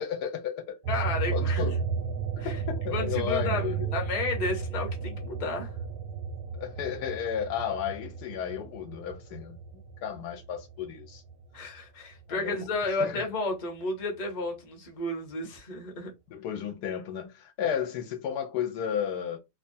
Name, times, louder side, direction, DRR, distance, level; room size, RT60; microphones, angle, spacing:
voice 1, 0.0-0.8 1.3-1.8 2.4-4.0 6.6-9.6 10.0-11.2 12.3-13.3 16.3-19.4, left 8 dB, 75° left, 1.1 m, -33 dB
sound 1, 0.8-11.7 12.1-13.6, right 6 dB, 85° right, 1.3 m, -34 dB
voice 2, 0.9-1.7 2.4-2.6 2.9-5.7 11.5-16.1, left 2 dB, 35° left, 0.7 m, -32 dB
2.9 x 2.2 x 2.6 m
omnidirectional pair, 1.8 m